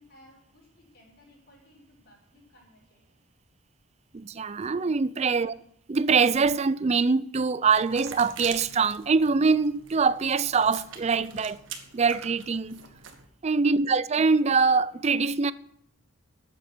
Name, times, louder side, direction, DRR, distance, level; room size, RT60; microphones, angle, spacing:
voice 1, 0.0-3.0 13.6-13.9, left 1 dB, 50° left, 6.1 m, -57 dB
voice 2, 4.1-5.5 5.9-11.6 11.9-12.8 13.4-15.5, right 4 dB, 30° right, 0.4 m, -23 dB
sound 1, 7.6-13.3, right 6 dB, 65° right, 1.6 m, -44 dB
12.0 x 8.4 x 6.2 m
head